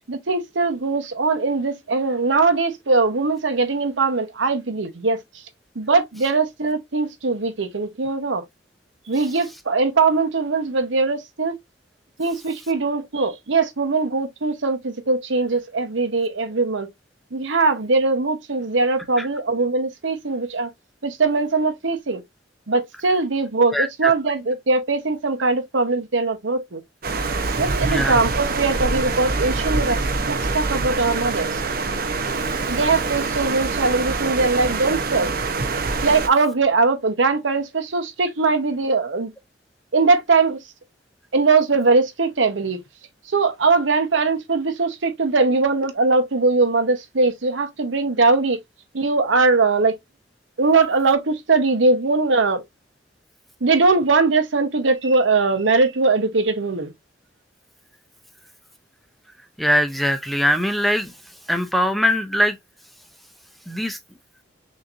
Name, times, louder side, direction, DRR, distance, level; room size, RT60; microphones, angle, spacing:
voice 1, 0.1-5.4 5.7-8.4 9.1-11.6 12.2-16.9 17.3-20.7 21.0-22.2 22.7-26.8 27.6-30.0 30.3-31.6 32.7-35.3 36.0-39.3 39.9-40.6 41.3-42.8 43.3-48.6 48.9-50.0 50.6-52.6 53.6-56.9, right 3 dB, 90° right, 0.9 m, -21 dB
voice 2, 23.7-24.1 27.8-28.2 59.6-61.1 61.5-62.6 63.7-64.0, equal, ahead, 0.5 m, -21 dB
sound 1, 27.0-36.3, right 3 dB, 50° right, 0.7 m, -25 dB
6.4 x 2.8 x 2.5 m
head